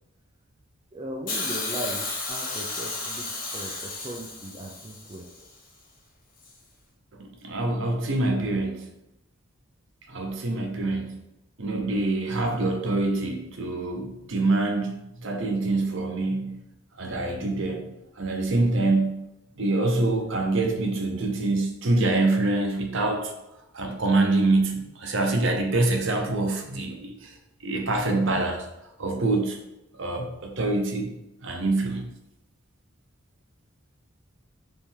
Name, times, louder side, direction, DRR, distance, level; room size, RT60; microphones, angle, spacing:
voice 1, 0.9-5.3, right 1 dB, 25° right, -2 dB, 0.4 m, -38 dB
Hiss, 1.3-5.4 6.4-6.5, left 3 dB, 40° left, 1.0 m, -33 dB
voice 2, 7.2-8.8 10.1-11.1 11.6-16.5 17.0-17.9 18.2-19.2 19.6-23.3 23.7-27.3 27.6-28.7 29.0-29.6 30.0-31.1 31.4-32.0, right 2 dB, 60° right, 2 dB, 0.7 m, -25 dB
3.6 x 3.3 x 4.4 m, 0.90 s
head